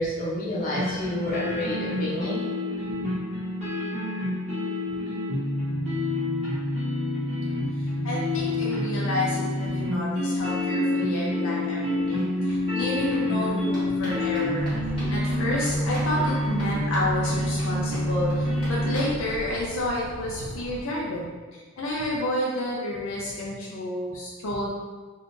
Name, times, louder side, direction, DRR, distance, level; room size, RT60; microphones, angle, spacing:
voice 1, 0.0-2.5, left 1 dB, 40° left, -7 dB, 0.9 m, -29 dB
sound 1, 0.8-19.0, left 1 dB, 35° right, 1.1 m, -27 dB
voice 2, 7.6-11.8 12.1-14.8 15.0-24.7, left 1 dB, 80° left, -4 dB, 0.5 m, -30 dB
sound 2, 11.2-11.3 11.5-20.0 20.3-20.4 20.7-20.8 21.0-21.1, equal, 25° left, 1.4 m, -45 dB
sound 3, 14.6-20.8, right 1 dB, 80° right, 0.5 m, -40 dB
3.5 x 2.7 x 2.6 m, 1.4 s
head